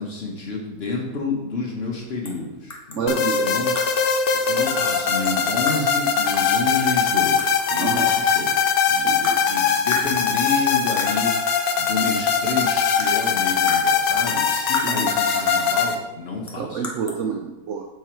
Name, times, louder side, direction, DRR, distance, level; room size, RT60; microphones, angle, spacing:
voice 1, 0.0-3.8 4.3-8.5 8.9-16.8, left 3 dB, 40° left, -1 dB, 1.2 m, -30 dB
sound 1, 2.2-2.4 2.7-4.2 5.2-6.0 6.3-7.7 8.1-8.6 9.2-9.6 9.9-10.6 11.0-11.3 12.2-12.3 12.6-15.2 16.5-17.2, left 1 dB, 20° left, 0.4 m, -36 dB
voice 2, 2.9-3.5 7.8-8.1 9.0-9.2 14.8-15.1 16.6-17.9, right 6 dB, 90° right, 2 dB, 0.6 m, -28 dB
sound 2, 3.1-16.0, left 6 dB, 80° left, 1.3 m, -21 dB
6.5 x 4.7 x 4.4 m, 1.1 s
omnidirectional pair, 1.9 m